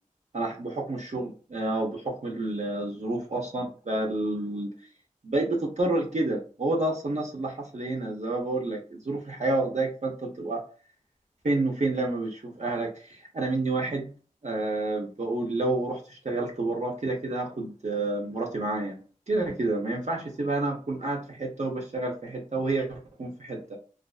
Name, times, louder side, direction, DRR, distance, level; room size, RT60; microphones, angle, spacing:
voice 1, 0.3-4.7 5.2-10.6 11.4-14.1 14.4-19.0 19.3-23.8, right 2 dB, 55° right, -1 dB, 0.6 m, -29 dB
2.4 x 2.3 x 2.3 m, 0.39 s
wide cardioid pair, 55°, 14 cm